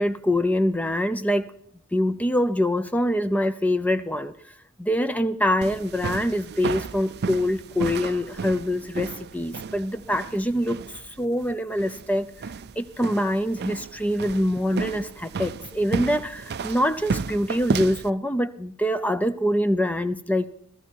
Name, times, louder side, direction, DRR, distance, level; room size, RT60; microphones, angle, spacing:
voice 1, 0.0-1.5 1.9-4.3 4.8-12.5 12.8-20.5, equal, 5° left, 0.6 m, -24 dB
sound 1, 5.6-18.1, right 5 dB, 50° right, 0.5 m, -33 dB
16.0 x 14.5 x 4.6 m
head